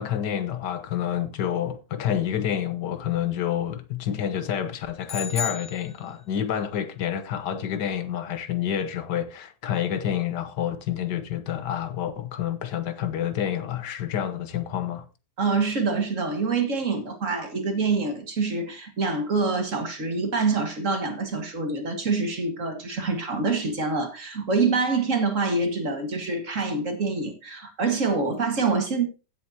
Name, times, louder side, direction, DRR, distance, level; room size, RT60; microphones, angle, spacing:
voice 1, 0.0-15.0, left 9 dB, 85° left, 1.6 m, -28 dB
sound 1, 5.1-6.5, left 5 dB, 55° left, 2.5 m, -34 dB
voice 2, 15.4-29.1, right 4 dB, 50° right, 2.1 m, -26 dB
15.5 x 7.8 x 2.8 m
omnidirectional pair, 1.8 m